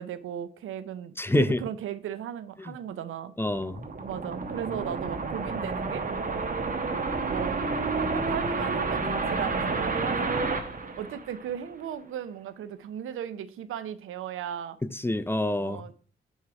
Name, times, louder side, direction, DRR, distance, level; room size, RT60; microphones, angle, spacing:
voice 1, 0.0-3.3 4.0-6.1 7.3-7.6 7.9-10.5 11.0-14.8 15.6-15.9, right 9 dB, 80° right, 0.6 m, -36 dB
voice 2, 1.2-1.6 2.6-2.8 3.4-3.9 14.8-15.8, left 1 dB, 10° left, 0.5 m, -27 dB
sound 1, 3.4-11.7, right 3 dB, 40° right, 1.0 m, -30 dB
5.5 x 4.8 x 4.7 m
cardioid pair, 60°, 21 cm